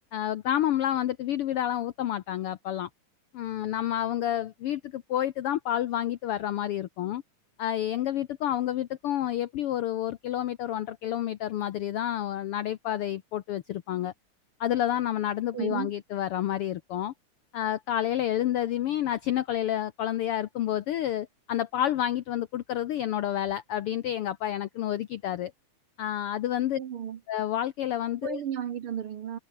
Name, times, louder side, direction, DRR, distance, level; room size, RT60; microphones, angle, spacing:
voice 1, 0.1-2.9 3.3-7.2 7.6-14.1 14.6-17.1 17.5-25.5 26.0-26.8 27.3-28.4, left 11 dB, 75° left, 1.3 m, -29 dB
voice 2, 15.5-15.9 26.8-27.2 28.2-29.4, right 9 dB, 60° right, 1.6 m, -33 dB
omnidirectional pair, 3.5 m